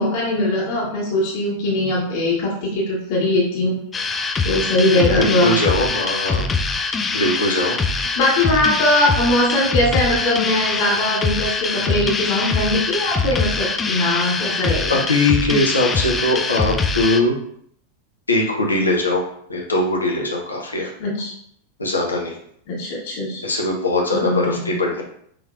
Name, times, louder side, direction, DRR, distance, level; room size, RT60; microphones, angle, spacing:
voice 1, 0.0-3.8 4.4-5.6 7.1-7.3 8.2-15.0 21.0-21.3 22.7-23.4 24.1-24.7, left 1 dB, 45° left, -5 dB, 1.5 m, -21 dB
sound 1, 3.9-17.2, left 4 dB, 15° left, 0.4 m, -23 dB
voice 2, 4.9-6.4 7.1-7.8 14.9-17.4 18.3-19.2 19.5-20.9 21.8-22.4 23.4-25.0, left 2 dB, 80° left, -1 dB, 1.0 m, -20 dB
6.0 x 3.3 x 2.5 m, 0.66 s
figure-of-eight pair, 90°, 0 cm